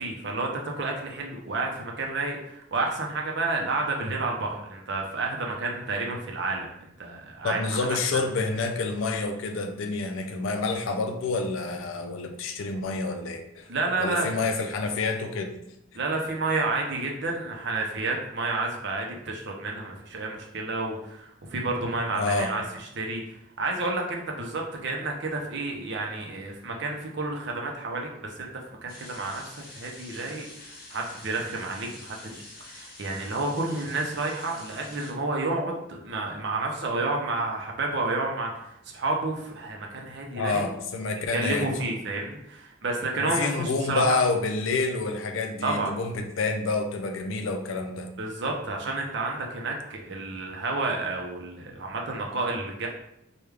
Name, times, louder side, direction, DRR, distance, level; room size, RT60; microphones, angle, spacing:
voice 1, 0.0-8.0 13.7-14.4 15.9-23.2 23.6-40.7 41.3-44.2 45.6-45.9 48.2-52.9, right 3 dB, 55° right, 0 dB, 0.6 m, -30 dB
voice 2, 7.4-13.7 14.0-15.5 22.1-22.5 40.4-41.7 43.2-48.1, left 3 dB, 75° left, 5 dB, 0.4 m, -28 dB
sound 1, 28.9-35.1, left 2 dB, 45° left, 0.8 m, -47 dB
3.4 x 2.2 x 3.2 m, 0.79 s
head